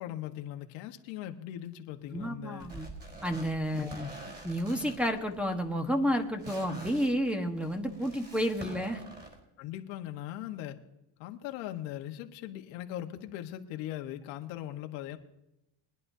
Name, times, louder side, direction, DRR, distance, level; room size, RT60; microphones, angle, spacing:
voice 1, 0.0-2.7 3.7-3.9 9.6-10.8 11.2-15.2, left 12 dB, 75° left, 5 dB, 1.5 m, -40 dB
voice 2, 2.1-2.9 3.2-4.1 4.4-9.0, equal, ahead, 1 dB, 1.3 m, -31 dB
sound 1, 2.6-9.4, right 1 dB, 20° right, 4.0 m, -46 dB
22.0 x 11.0 x 2.8 m, 0.88 s
cardioid pair, 120°, 46 cm